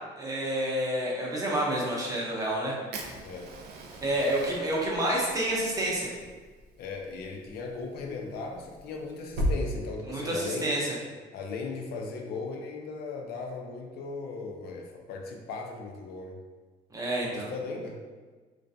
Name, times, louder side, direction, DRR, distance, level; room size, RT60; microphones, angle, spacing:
voice 1, 0.2-2.8 4.0-6.1 10.1-10.8 16.9-17.5, right 1 dB, 20° right, -4 dB, 0.7 m, -29 dB
Fire, 2.9-9.6, equal, 70° right, 0.4 m, -37 dB
voice 2, 3.2-3.5 6.8-10.8 11.3-16.4 17.2-18.0, left 4 dB, 70° left, 2 dB, 0.4 m, -37 dB
2.4 x 2.2 x 2.6 m, 1.4 s
cardioid pair, 110°, 17 cm